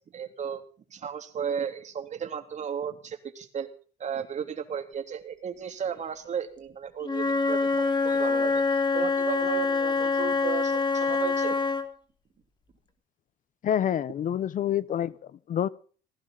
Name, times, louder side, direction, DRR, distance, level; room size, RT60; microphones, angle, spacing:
voice 1, 0.1-0.6 0.9-3.7 4.0-8.6 8.9-11.6, right 7 dB, 45° right, 3.4 m, -34 dB
Wind instrument woodwind instrument, 7.0-11.9, left 4 dB, 25° left, 3.3 m, -25 dB
voice 2, 13.6-15.7, left 10 dB, 50° left, 0.9 m, -27 dB
19.0 x 17.5 x 4.0 m
cardioid pair, 110°, 17 cm